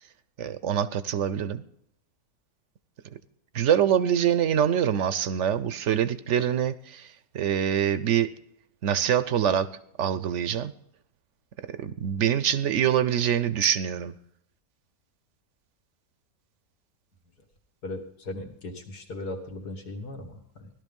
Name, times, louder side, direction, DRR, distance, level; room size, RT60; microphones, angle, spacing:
voice 1, 0.4-1.6 3.5-8.3 8.8-9.7 10.0-10.7 11.8-14.1, right 9 dB, 60° right, 14 dB, 0.9 m, -25 dB
voice 2, 17.8-20.7, left 2 dB, 80° left, 4 dB, 2.4 m, -38 dB
17.0 x 12.0 x 5.3 m, 0.69 s
omnidirectional pair, 1.6 m